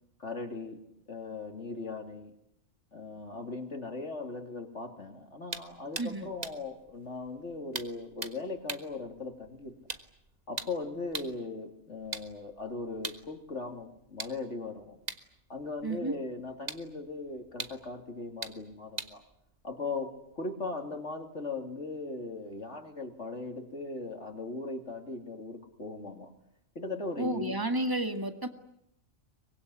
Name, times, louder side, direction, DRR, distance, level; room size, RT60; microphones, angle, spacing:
voice 1, 0.2-0.8 1.1-2.3 2.9-9.8 10.5-15.0 15.5-19.2 19.6-26.3 26.7-27.6, left 3 dB, 60° left, 4 dB, 3.2 m, -39 dB
sound 1, 5.5-11.4 12.0-20.4, right 3 dB, 30° right, 1.5 m, -44 dB
voice 2, 15.8-16.1 27.2-28.5, right 2 dB, 15° right, 7 dB, 2.0 m, -31 dB
24.0 x 22.0 x 9.8 m, 0.76 s
omnidirectional pair, 1.4 m